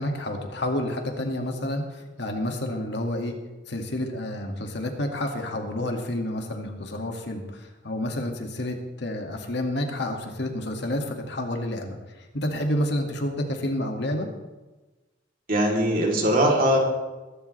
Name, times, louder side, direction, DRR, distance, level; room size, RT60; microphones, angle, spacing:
voice 1, 0.0-3.4 3.7-14.3, left 1 dB, 65° left, 3 dB, 2.1 m, -29 dB
voice 2, 15.5-16.8, equal, 50° right, -1 dB, 3.3 m, -21 dB
22.0 x 12.5 x 3.3 m, 1.2 s
head